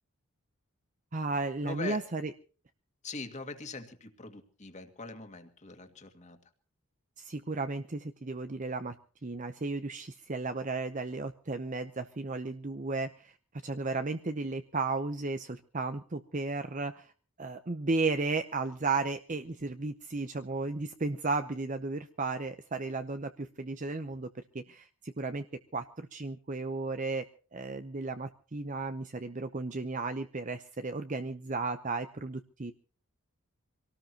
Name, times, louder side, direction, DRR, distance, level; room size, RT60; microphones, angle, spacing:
voice 1, 1.1-2.3 7.2-8.9 9.2-13.3 13.6-17.1 17.4-25.5 25.7-32.7, right 3 dB, 35° right, 9 dB, 0.7 m, -34 dB
voice 2, 1.6-2.0 3.0-6.4, left 3 dB, 35° left, 6 dB, 2.1 m, -42 dB
25.5 x 18.0 x 2.9 m, 0.40 s
head